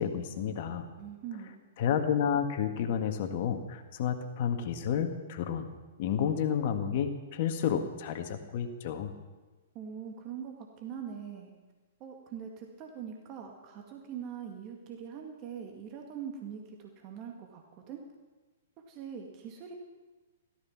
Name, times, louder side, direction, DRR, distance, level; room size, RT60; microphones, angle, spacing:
voice 1, 0.0-0.9 1.8-5.7 6.0-9.1, left 8 dB, 50° left, 6 dB, 1.7 m, -30 dB
voice 2, 1.0-1.6 9.7-11.5 12.0-18.0 18.9-19.7, right 7 dB, 35° right, 2 dB, 2.2 m, -42 dB
16.5 x 13.5 x 6.0 m, 1.2 s
figure-of-eight pair, 115°, 0 cm